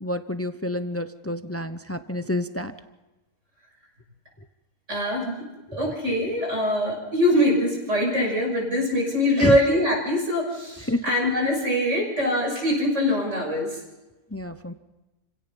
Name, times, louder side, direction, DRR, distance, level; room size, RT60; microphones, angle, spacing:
voice 1, 0.0-2.7 9.4-9.6 10.9-11.0 14.3-14.7, left 1 dB, 20° left, 10 dB, 0.4 m, -28 dB
voice 2, 4.9-5.4 5.7-13.8, left 1 dB, 50° right, 0 dB, 6.5 m, -23 dB
29.5 x 16.5 x 5.5 m, 1.1 s
omnidirectional pair, 1.6 m